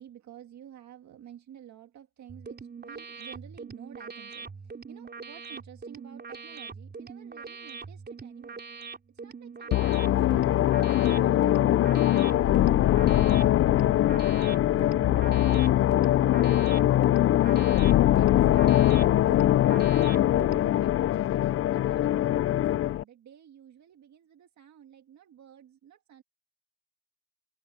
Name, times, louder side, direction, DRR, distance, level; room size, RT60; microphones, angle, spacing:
voice 1, 0.0-8.6 9.1-13.0 13.3-15.6 16.0-17.1 17.4-20.9 21.4-26.2, right 10 dB, 65° right, 2.0 m, -52 dB
sound 1, 2.3-20.8, right 5 dB, 35° right, 3.8 m, -43 dB
sound 2, 9.7-23.0, left 13 dB, 50° left, 0.4 m, -22 dB
open air
cardioid pair, 90°, 30 cm